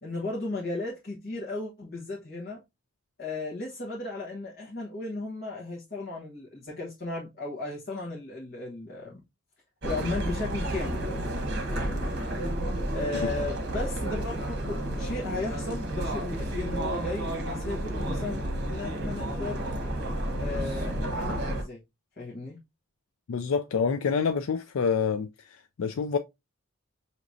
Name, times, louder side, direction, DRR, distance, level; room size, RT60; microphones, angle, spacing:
voice 1, 0.0-2.6 3.2-9.2 9.8-11.0 11.7-12.2 12.9-14.4 14.7-18.4 18.7-19.6 20.4-21.8 22.2-22.6, left 2 dB, 45° left, 1.2 m, -35 dB
sound 1, 9.8-21.6, right 1 dB, 50° right, 1.1 m, -31 dB
voice 2, 23.3-26.2, left 6 dB, 70° left, 0.4 m, -27 dB
6.0 x 2.9 x 2.6 m
head